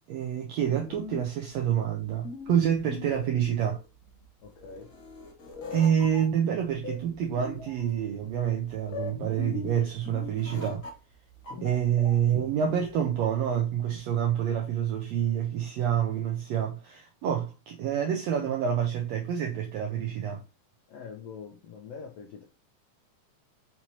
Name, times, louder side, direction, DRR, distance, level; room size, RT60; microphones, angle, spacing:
voice 1, 0.0-3.8 5.7-10.8 11.6-20.4, right 9 dB, 85° right, 1.5 m, -27 dB
sound 1, 0.6-13.1, left 4 dB, 50° left, 1.2 m, -42 dB
voice 2, 4.4-4.9 20.9-22.4, left 6 dB, 85° left, 1.4 m, -44 dB
5.7 x 3.0 x 2.8 m
omnidirectional pair, 3.7 m